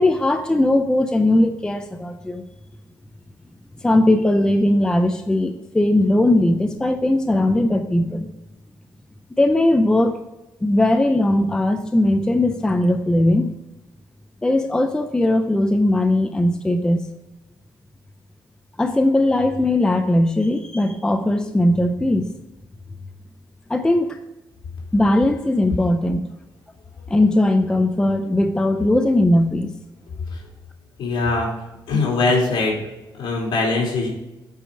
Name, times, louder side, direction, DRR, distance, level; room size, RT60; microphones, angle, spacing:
voice 1, 0.0-2.4 3.8-8.3 9.4-10.2 10.6-13.5 14.4-17.0 18.8-22.3 23.7-24.2 24.9-26.3 27.1-29.7, left 1 dB, 10° left, 7 dB, 0.5 m, -19 dB
voice 2, 31.0-31.5 31.9-32.8 33.2-34.1, left 3 dB, 70° left, -2 dB, 3.2 m, -21 dB
8.9 x 5.1 x 5.2 m, 0.99 s
cardioid pair, 150°, 8 cm